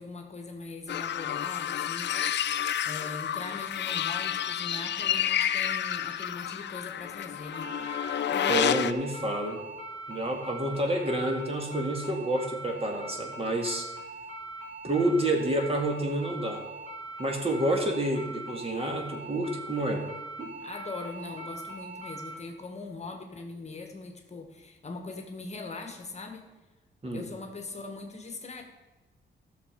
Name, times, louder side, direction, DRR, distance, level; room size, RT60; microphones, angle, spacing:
voice 1, 0.0-2.5 2.8-7.8 20.6-26.4 27.1-28.6, left 3 dB, 35° left, 4 dB, 1.4 m, -41 dB
sound 1, 0.9-8.9, left 10 dB, 65° left, 0.5 m, -30 dB
sound 2, 7.5-22.3, right 2 dB, 85° right, 2.5 m, -42 dB
voice 2, 8.3-9.6 10.1-13.9 14.8-16.7 17.2-20.0 20.4-20.5 27.0-27.2, right 1 dB, 30° right, 2 dB, 2.0 m, -29 dB
14.0 x 6.6 x 5.2 m, 1.2 s
cardioid pair, 110°, 20 cm